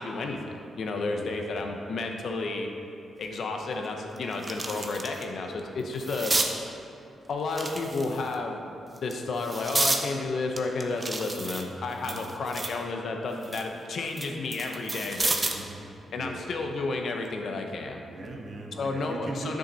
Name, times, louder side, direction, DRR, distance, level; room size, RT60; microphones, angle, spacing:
voice 1, 0.0-2.7 3.2-6.3 7.3-8.6 8.9-15.7 16.1-18.0 18.8-19.6, left 3 dB, 55° left, 3 dB, 0.8 m, -32 dB
voice 2, 1.1-1.7 12.0-12.4 15.4-16.6 18.1-19.6, right 2 dB, 40° right, 1 dB, 1.0 m, -40 dB
sound 1, 3.2-3.3 3.8-5.2 5.6-6.5 7.5-8.3 8.9-10.0 10.6-12.8 13.2-15.7 17.0-17.3, right 2 dB, 20° right, 0.6 m, -31 dB
10.0 x 6.4 x 4.1 m, 2.7 s
wide cardioid pair, 150°, 0 cm